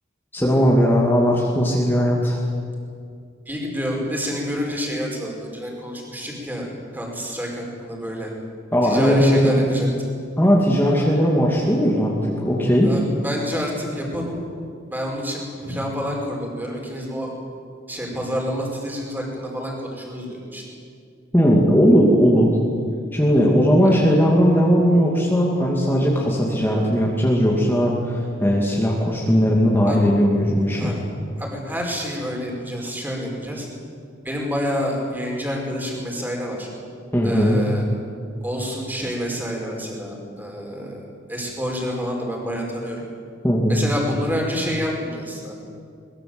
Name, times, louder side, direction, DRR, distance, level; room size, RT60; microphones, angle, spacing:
voice 1, 0.3-2.4 8.7-9.6 10.4-12.9 21.3-22.6 23.1-30.9 37.1-37.6 43.4-43.8, equal, 10° left, -3 dB, 2.6 m, -18 dB
voice 2, 3.4-6.7 6.9-8.3 8.8-9.9 12.8-14.4 14.9-17.3 17.9-20.6 23.8-23.9 29.9-30.0 30.8-31.0 31.4-33.7 34.2-36.7 37.2-37.8 38.4-41.0 41.3-43.0 43.7-45.5, equal, 10° right, -1 dB, 5.1 m, -28 dB
23.0 x 21.5 x 8.0 m, 2.3 s
head